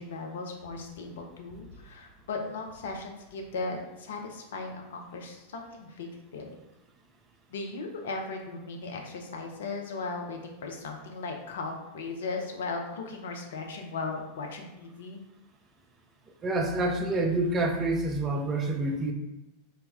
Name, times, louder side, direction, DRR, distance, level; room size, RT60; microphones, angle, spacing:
voice 1, 0.0-6.6 7.5-15.2, left 3 dB, 60° left, 2 dB, 0.4 m, -37 dB
voice 2, 16.4-19.1, right 2 dB, 25° right, 2 dB, 0.3 m, -27 dB
2.1 x 2.0 x 3.4 m, 0.98 s
figure-of-eight pair, 90°, 0 cm